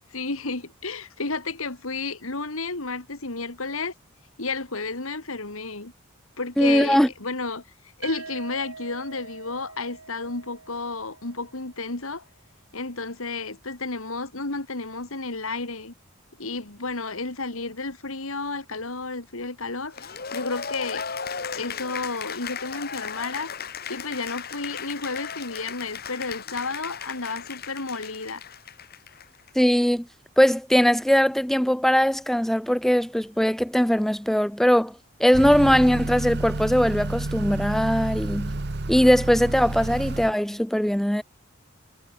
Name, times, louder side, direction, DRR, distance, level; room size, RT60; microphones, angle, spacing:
voice 1, 0.1-3.9 4.4-5.9 6.4-7.6 8.0-12.2 12.7-15.9 16.4-21.1 21.5-23.5 23.9-28.4, left 3 dB, 75° left, 2.6 m, -32 dB
voice 2, 6.6-7.1 29.6-30.1 30.4-34.9 35.2-38.6 38.9-41.2, equal, ahead, 0.4 m, -20 dB
sound 1, 8.0-11.9, right 4 dB, 85° right, 3.7 m, -44 dB
Cheering / Applause, 19.9-29.5, left 6 dB, 45° left, 1.7 m, -36 dB
Motor vehicle (road) / Accelerating revving vroom, 35.3-40.3, right 2 dB, 50° right, 1.0 m, -30 dB
head